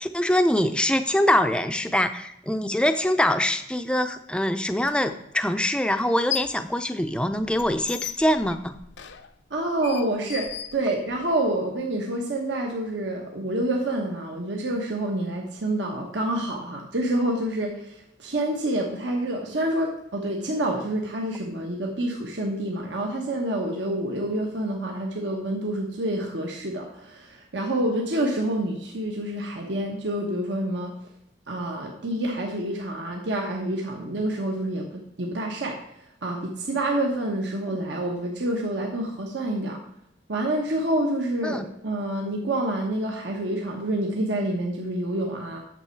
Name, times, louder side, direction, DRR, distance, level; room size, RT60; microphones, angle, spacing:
voice 1, 0.0-8.7 37.7-37.8 41.4-41.7, left 1 dB, 5° left, 9 dB, 0.4 m, -24 dB
sound 1, 4.8-4.9 6.0-6.7 7.0-11.4, left 9 dB, 75° left, 0.6 m, -36 dB
voice 2, 9.5-30.9 31.5-39.8 40.3-45.6, right 1 dB, 80° right, 0 dB, 1.1 m, -28 dB
8.9 x 6.9 x 4.5 m, 0.77 s
head